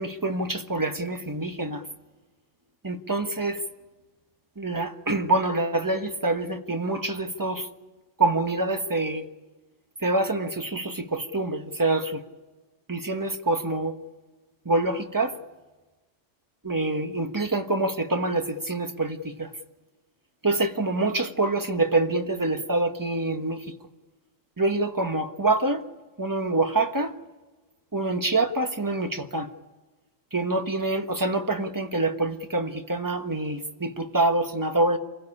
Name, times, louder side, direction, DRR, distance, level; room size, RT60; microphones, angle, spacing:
voice 1, 0.0-1.8 2.8-3.6 4.6-7.7 8.2-9.2 10.0-12.2 12.9-14.0 14.6-15.3 16.6-19.5 20.4-23.7 24.6-25.8 26.2-27.1 27.9-29.5 30.3-35.0, right 2 dB, 15° right, 6 dB, 1.2 m, -26 dB
27.0 x 16.0 x 9.9 m, 1.2 s
omnidirectional pair, 1.3 m